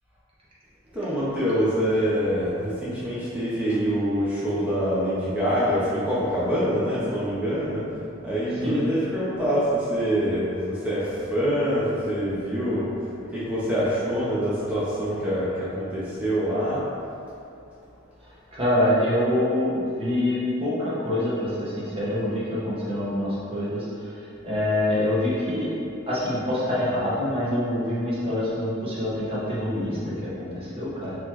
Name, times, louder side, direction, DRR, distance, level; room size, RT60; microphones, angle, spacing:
voice 1, 0.9-7.8 8.2-16.8, equal, 5° right, -10 dB, 0.5 m, -25 dB
voice 2, 18.5-23.8 24.4-31.2, left 1 dB, 30° right, -9 dB, 1.0 m, -25 dB
3.9 x 3.1 x 2.8 m, 2.6 s
head